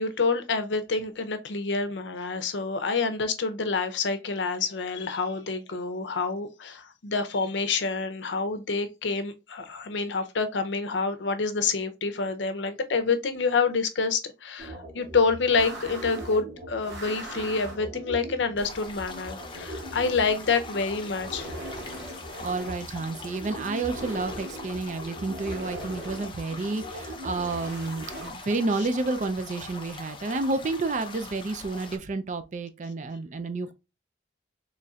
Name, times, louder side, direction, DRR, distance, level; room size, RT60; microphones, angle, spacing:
voice 1, 0.0-21.5, left 4 dB, 85° left, 0.6 m, -27 dB
sound 1, 14.6-28.3, right 1 dB, 90° right, 1.8 m, -40 dB
sound 2, 18.6-32.0, left 4 dB, 25° left, 0.6 m, -42 dB
voice 2, 22.4-33.7, right 3 dB, 40° right, 0.4 m, -30 dB
4.1 x 3.1 x 2.3 m
head